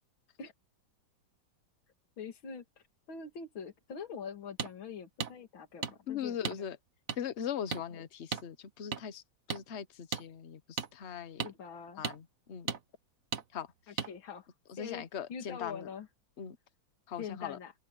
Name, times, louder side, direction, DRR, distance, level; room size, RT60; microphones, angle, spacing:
voice 1, 2.2-2.6 3.1-6.7 7.9-8.1 11.4-12.0 13.9-14.5 14.8-16.1 17.2-17.7, left 6 dB, 70° left, 3.1 m, -44 dB
sound 1, 4.6-4.7 5.2-5.3 5.8-5.9 6.4-6.6 7.1-7.2 7.7-7.8 8.3-8.5 8.9-9.0 9.5-9.6 10.1-10.2 10.8-10.9 11.4-11.5 12.0-12.2 12.7-12.8 13.3-13.4 14.0-14.1, right 6 dB, 45° right, 1.5 m, -35 dB
voice 2, 6.1-6.8 7.2-9.2 9.5-11.4 12.0-12.7 13.5-13.7 14.7-15.9 16.4-16.6 17.1-17.6, left 8 dB, 45° left, 1.0 m, -40 dB
open air
omnidirectional pair, 2.3 m